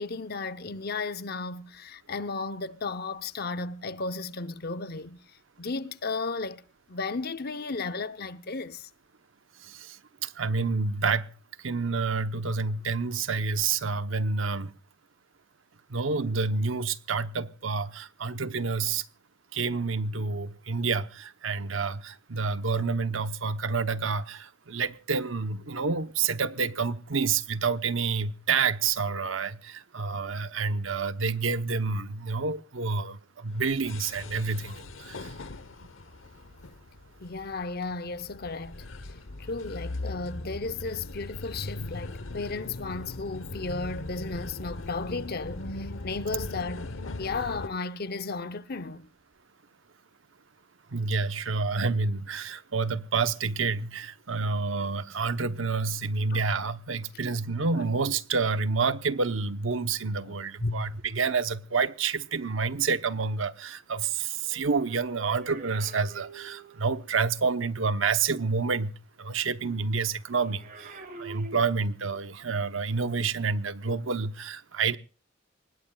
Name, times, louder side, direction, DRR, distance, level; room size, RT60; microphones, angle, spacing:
voice 1, 0.0-5.2 5.6-6.6 6.9-8.9 37.2-38.8 39.4-46.9 47.2-49.1 56.3-56.4 60.2-60.3 60.6-60.9, left 3 dB, 50° left, 0.8 m, -34 dB
voice 2, 10.2-11.3 11.6-14.7 15.9-19.0 19.5-35.3 50.9-68.9 69.2-75.0, right 4 dB, 75° right, 0.9 m, -28 dB
sound 1, 33.5-47.7, left 2 dB, 80° left, 1.0 m, -39 dB
sound 2, 64.3-67.1 70.2-72.2 73.0-73.2, right 3 dB, 45° right, 3.3 m, -46 dB
24.0 x 20.0 x 2.4 m
head